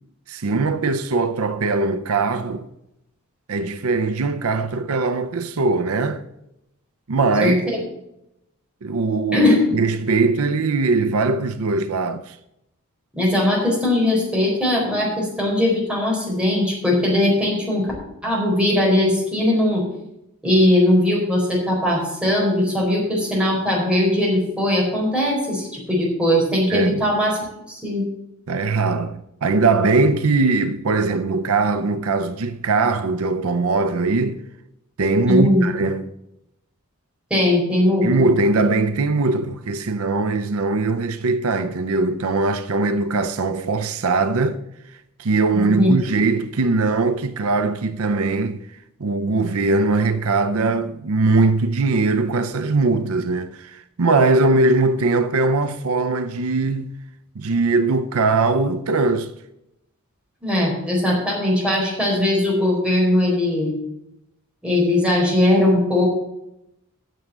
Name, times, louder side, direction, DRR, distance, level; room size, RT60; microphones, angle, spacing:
voice 1, 0.3-2.7 3.5-6.2 7.1-7.6 8.8-12.4 26.7-27.0 28.5-34.4 35.0-36.1 38.0-44.6 44.9-48.6 49.0-57.0 57.4-59.3, right 3 dB, 70° right, 0.6 m, -21 dB
voice 2, 7.4-7.8 9.3-9.5 13.1-17.9 18.2-19.8 20.4-27.4 27.7-28.0 35.3-35.6 37.3-38.3 45.5-46.0 60.4-63.7 64.6-66.1, left 1 dB, 5° right, 4.2 m, -19 dB
9.3 x 6.6 x 7.3 m
head